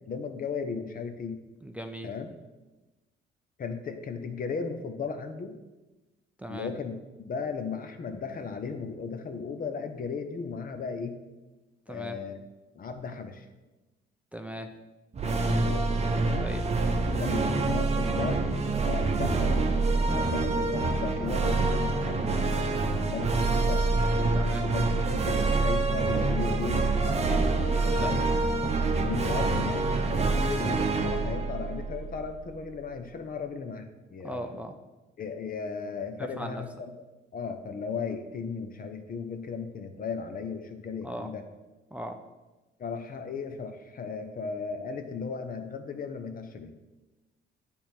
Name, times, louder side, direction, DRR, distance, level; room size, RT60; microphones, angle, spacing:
voice 1, 0.1-1.4 2.0-2.3 3.6-5.6 6.5-6.9 7.3-11.2 11.9-12.4 12.7-13.5 15.3-15.9 17.1-18.4 18.8-23.9 24.6-24.8 25.2-28.3 28.9-34.6 35.2-36.7 37.3-41.4 42.8-46.8, left 5 dB, 45° left, 7 dB, 0.8 m, -36 dB
voice 2, 1.6-2.1 6.4-6.7 11.9-12.2 14.3-14.7 16.4-16.6 24.3-24.7 27.2-28.1 34.2-34.8 36.2-36.7 41.0-41.3 41.9-42.2, right 1 dB, 5° right, 5 dB, 0.5 m, -38 dB
sound 1, 15.1-32.6, right 3 dB, 35° right, 0.8 m, -26 dB
8.4 x 3.6 x 4.4 m, 1.1 s
cardioid pair, 90°, 20 cm